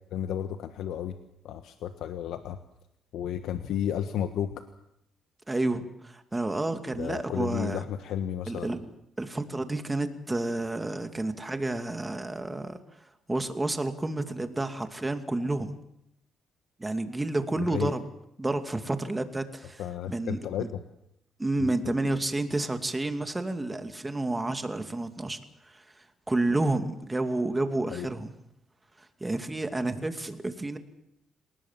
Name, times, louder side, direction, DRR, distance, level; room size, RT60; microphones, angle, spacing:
voice 1, 0.1-1.2 1.4-2.6 3.1-4.6 6.9-8.7 17.6-18.0 19.8-20.8 21.6-21.9 27.9-28.1, left 10 dB, 85° left, 8 dB, 1.3 m, -33 dB
voice 2, 5.5-7.8 8.5-8.8 9.2-12.8 13.3-15.7 16.8-18.0 18.4-19.8 20.1-20.4 21.4-25.4 25.7-25.8 26.3-28.3 29.2-30.8, right 2 dB, 15° right, 7 dB, 2.5 m, -30 dB
28.0 x 19.0 x 7.5 m, 0.82 s
cardioid pair, 90°, 0 cm